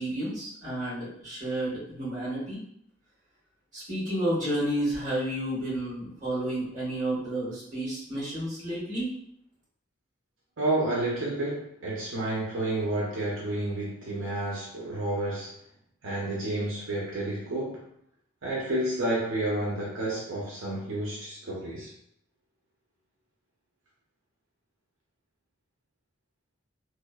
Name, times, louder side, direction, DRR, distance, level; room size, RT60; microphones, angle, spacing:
voice 1, 0.0-2.6 3.7-9.1, right 1 dB, 40° right, -9 dB, 1.5 m, -31 dB
voice 2, 10.6-15.6 16.0-17.8 18.4-21.9, right 1 dB, 85° right, -5 dB, 0.6 m, -30 dB
2.9 x 2.0 x 2.2 m, 0.69 s
head